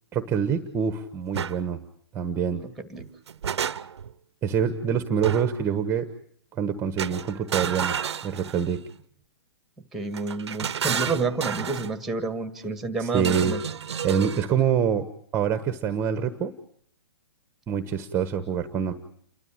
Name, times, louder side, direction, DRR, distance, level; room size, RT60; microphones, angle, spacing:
voice 1, 0.1-1.8 2.1-2.6 4.4-6.1 6.6-7.9 8.2-8.8 13.0-13.6 14.0-15.1 15.3-16.5 17.7-18.9, right 7 dB, 20° right, 9 dB, 1.2 m, -25 dB
sound 1, 1.3-1.6 3.0-4.1 5.2-5.7 7.0-8.8 10.1-11.9 13.2-14.5, right 8 dB, 85° right, 0.8 m, -31 dB
voice 2, 2.6-3.0 9.9-13.6, right 4 dB, ahead, 9 dB, 1.9 m, -29 dB
29.5 x 12.5 x 8.8 m, 0.65 s
hypercardioid pair, 145°, 14 cm